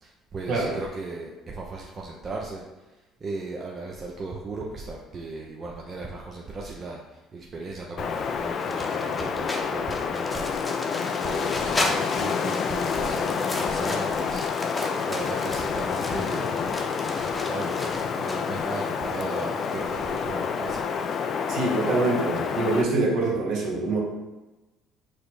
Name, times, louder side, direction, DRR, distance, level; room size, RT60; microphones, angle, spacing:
voice 1, 0.0-2.6 3.2-7.0 7.3-14.8 15.1-16.7 17.1-20.9, right 3 dB, 40° right, -1 dB, 0.6 m, -37 dB
Wind, 8.0-22.8, left 6 dB, 50° left, 0.4 m, -28 dB
sound 1, 8.6-18.4, left 1 dB, 15° left, 0.8 m, -35 dB
voice 2, 21.5-24.0, right 2 dB, 70° right, -3 dB, 1.4 m, -25 dB
4.8 x 2.1 x 4.7 m, 1.1 s
hypercardioid pair, 70°, 0 cm